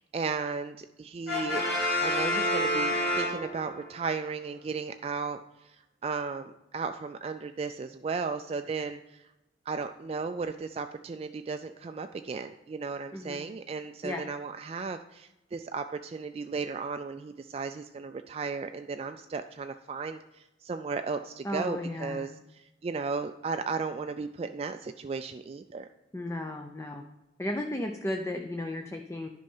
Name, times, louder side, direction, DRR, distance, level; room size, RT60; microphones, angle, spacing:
voice 1, 0.0-1.6 2.0-9.3 9.7-25.9, right 4 dB, 35° right, 8 dB, 0.3 m, -35 dB
Brass instrument, 1.3-3.9, left 1 dB, 60° left, 2.7 m, -28 dB
voice 2, 13.1-13.4 14.0-14.2 21.4-22.3 26.1-27.0 27.4-29.3, left 1 dB, 15° left, 4 dB, 0.5 m, -34 dB
10.5 x 5.5 x 5.5 m, 0.94 s
head